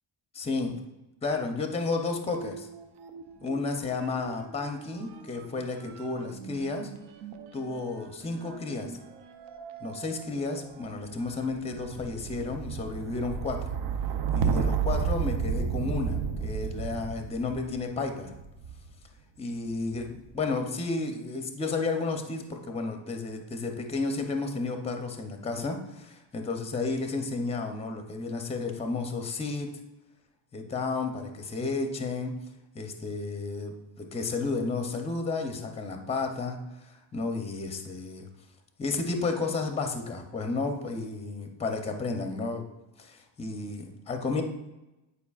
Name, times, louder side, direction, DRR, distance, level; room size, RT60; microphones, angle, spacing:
voice 1, 0.3-0.8 1.2-2.7 3.4-6.9 7.5-8.9 9.8-13.8 14.3-18.3 19.4-29.7 30.5-32.3 32.7-38.2 38.8-42.6 43.0-44.4, left 3 dB, 15° left, 4 dB, 0.5 m, -32 dB
sound 1, 2.3-3.7 3.9-19.0 19.7-20.3, right 6 dB, 60° right, 0.6 m, -34 dB
9.8 x 4.7 x 2.3 m, 1.0 s
cardioid pair, 170°, 46 cm